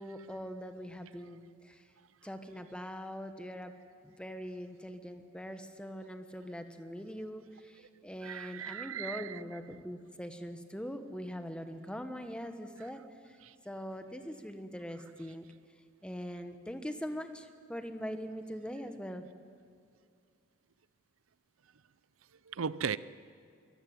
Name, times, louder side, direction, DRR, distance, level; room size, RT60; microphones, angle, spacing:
voice 1, 0.0-1.8 2.2-3.7 4.0-13.0 13.3-13.4 13.6-15.5 16.0-19.3, equal, 5° left, 1.2 m, -42 dB
voice 2, 8.2-9.2 22.6-23.0, right 7 dB, 85° right, 0.6 m, -36 dB
23.0 x 15.0 x 9.3 m
head